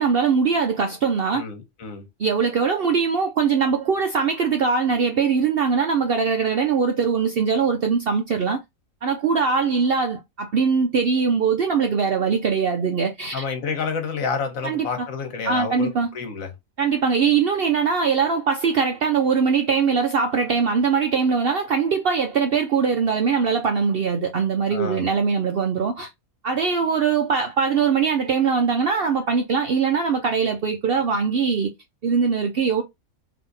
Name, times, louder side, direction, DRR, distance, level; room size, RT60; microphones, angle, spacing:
voice 1, 0.0-1.4 2.2-8.6 9.0-13.4 14.6-14.9 15.4-16.1 16.8-26.1 26.4-31.7 32.0-32.8, right 5 dB, 65° right, 0.6 m, -21 dB
voice 2, 1.3-2.1 13.3-16.5 24.7-25.0, left 5 dB, 70° left, 1.4 m, -29 dB
3.8 x 2.8 x 3.9 m
omnidirectional pair, 1.5 m